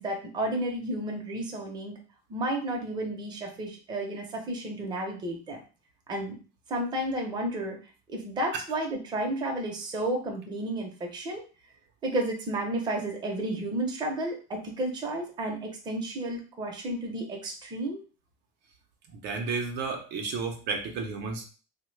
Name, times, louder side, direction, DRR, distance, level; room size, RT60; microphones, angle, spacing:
voice 1, 0.0-1.9 2.3-5.6 6.1-6.4 6.7-7.8 8.1-11.4 12.0-18.0, right 1 dB, 20° right, 0 dB, 0.6 m, -32 dB
voice 2, 19.1-21.4, right 4 dB, 60° right, 3 dB, 0.6 m, -32 dB
3.0 x 2.1 x 3.1 m, 0.36 s
cardioid pair, 160°, 20 cm